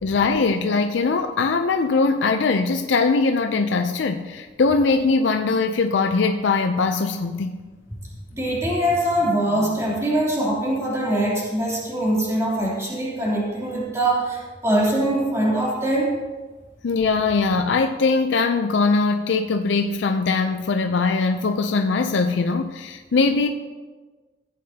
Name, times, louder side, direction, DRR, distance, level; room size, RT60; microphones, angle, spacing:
voice 1, 0.0-7.6 16.8-23.5, left 4 dB, 90° left, 6 dB, 0.5 m, -21 dB
voice 2, 8.3-16.2, right 1 dB, 15° right, -6 dB, 3.0 m, -23 dB
15.5 x 8.4 x 2.8 m, 1.3 s
head